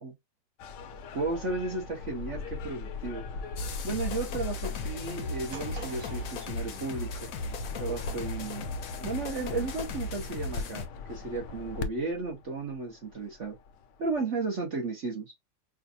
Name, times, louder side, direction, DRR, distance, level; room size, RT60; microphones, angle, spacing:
sound 1, 0.6-14.2, left 4 dB, 80° left, 1.3 m, -40 dB
voice 1, 1.1-3.3 3.8-7.3 7.8-13.6 14.0-15.3, right 3 dB, 45° right, 1.2 m, -34 dB
sound 2, 3.6-10.9, left 3 dB, 60° left, 1.1 m, -37 dB
sound 3, 5.5-7.8, right 2 dB, 80° right, 2.2 m, -47 dB
5.3 x 2.5 x 2.7 m
omnidirectional pair, 1.9 m